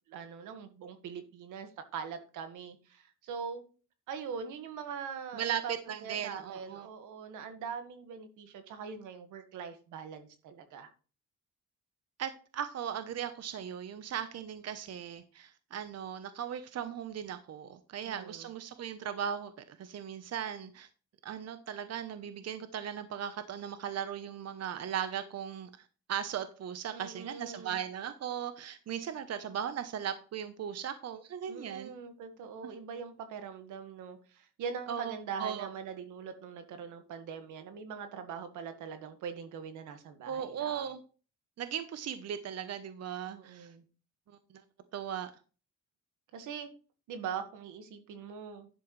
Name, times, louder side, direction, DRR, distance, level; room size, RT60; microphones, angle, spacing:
voice 1, 0.1-3.6 4.1-5.8 6.0-10.9 18.1-18.5 26.9-27.8 31.5-40.9 43.3-43.8 46.3-46.7 47.1-48.7, right 6 dB, 90° right, 8 dB, 1.8 m, -42 dB
voice 2, 5.9-6.9 12.2-20.9 21.2-25.7 26.1-31.9 34.9-35.1 35.4-35.7 40.3-41.0 41.6-43.7 44.3-44.4 44.9-45.3, right 9 dB, 55° right, 10 dB, 1.0 m, -38 dB
11.0 x 7.6 x 3.3 m, 0.35 s
cardioid pair, 90°, 30 cm